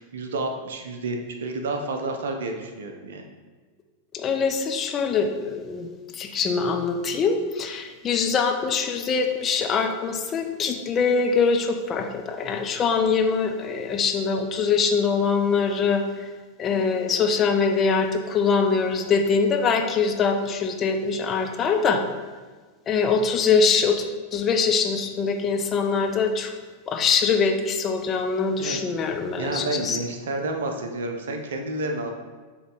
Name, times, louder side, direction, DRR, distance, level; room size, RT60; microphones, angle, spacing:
voice 1, 0.0-3.2 28.6-28.8 29.4-32.1, right 2 dB, 60° right, 4 dB, 0.7 m, -30 dB
voice 2, 4.1-5.9 6.1-16.0 16.6-22.0 22.9-24.0 24.3-26.5 26.9-30.0, left 5 dB, 25° left, 4 dB, 0.6 m, -23 dB
8.0 x 3.2 x 3.9 m, 1.4 s
figure-of-eight pair, 90°, 0 cm